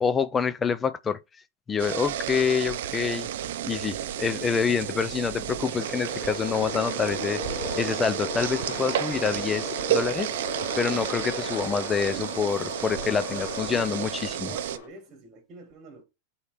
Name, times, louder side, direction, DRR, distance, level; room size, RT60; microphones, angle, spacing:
voice 1, 0.0-1.2 1.7-3.3 3.7-7.4 7.8-10.3 10.8-14.5, left 6 dB, 15° left, 0.4 m, -27 dB
sound 1, 1.8-14.8, right 11 dB, 65° right, 0.5 m, -32 dB
voice 2, 3.6-4.1 13.3-16.0, right 4 dB, 25° right, 1.9 m, -46 dB
sound 2, 3.9-14.9, left 4 dB, 55° left, 2.7 m, -39 dB
8.2 x 4.3 x 3.3 m
supercardioid pair, 165°, 0 cm